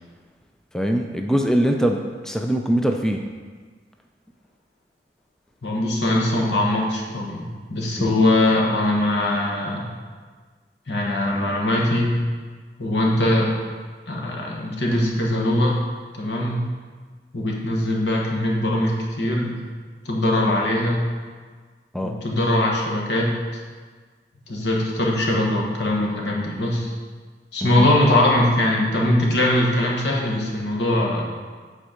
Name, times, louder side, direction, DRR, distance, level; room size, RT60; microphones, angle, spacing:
voice 1, 0.7-2.0 2.3-3.2 8.0-8.1 21.9-22.1 27.6-27.9, equal, 5° left, 3 dB, 0.4 m, -22 dB
voice 2, 5.6-9.9 10.9-12.2 12.8-13.5 14.1-15.8 16.1-16.6 17.3-18.9 19.2-19.6 20.0-21.0 22.0-23.4 24.5-26.9 27.5-31.3, left 1 dB, 80° left, -2 dB, 1.4 m, -21 dB
8.0 x 4.5 x 5.0 m, 1.5 s
head